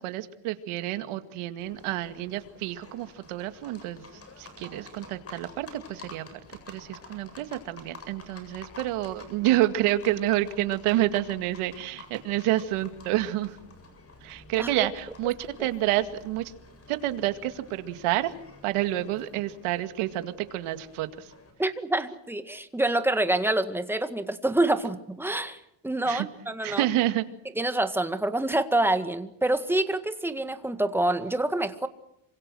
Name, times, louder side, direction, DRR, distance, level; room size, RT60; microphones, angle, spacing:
voice 1, 0.0-6.4 6.7-13.6 14.2-16.5 16.9-18.3 18.6-21.3 26.1-26.3 26.6-27.3, right 14 dB, 85° right, 9 dB, 2.3 m, -29 dB
Livestock farm animals working animals, 1.6-21.5, left 3 dB, 30° left, 7.9 m, -50 dB
voice 2, 21.6-26.8 27.6-31.9, right 1 dB, 5° right, 9 dB, 1.8 m, -27 dB
27.5 x 25.5 x 6.3 m, 0.80 s
cardioid pair, 140°, 49 cm